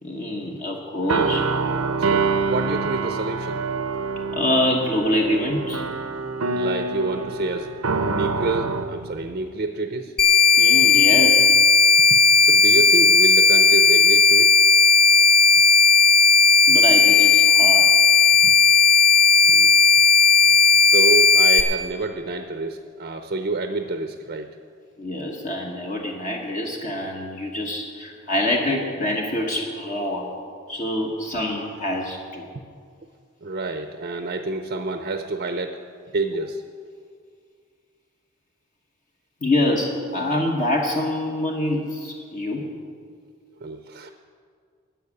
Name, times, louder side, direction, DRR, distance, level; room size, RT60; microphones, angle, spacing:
voice 1, 0.0-1.5 4.3-5.8 10.6-11.5 16.7-17.9 25.0-30.3 30.7-32.5 39.4-42.7, left 1 dB, 35° left, 0 dB, 1.2 m, -25 dB
sound 1, 1.0-9.5, right 4 dB, 80° right, 0.7 m, -26 dB
voice 2, 2.0-3.6 6.5-7.7 8.0-10.1 12.1-14.7 18.4-18.5 19.5-19.7 20.4-24.5 33.4-35.8 36.1-36.6 43.6-44.1, right 2 dB, 40° right, 7 dB, 0.6 m, -28 dB
sound 2, 10.2-21.6, left 5 dB, 5° left, 1.1 m, -15 dB
11.5 x 7.4 x 9.8 m, 2.1 s
head